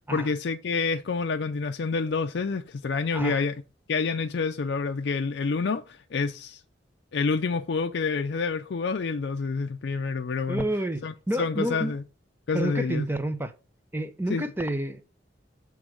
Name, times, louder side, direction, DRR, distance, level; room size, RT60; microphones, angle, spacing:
voice 1, 0.1-3.5 3.9-6.6 7.1-10.7 11.0-12.0 12.5-13.1 14.3-14.5, left 4 dB, 65° left, 0.4 m, -28 dB
voice 2, 10.5-11.9 12.5-13.5 13.9-15.0, right 1 dB, 10° right, 0.6 m, -29 dB
7.7 x 3.5 x 6.2 m
head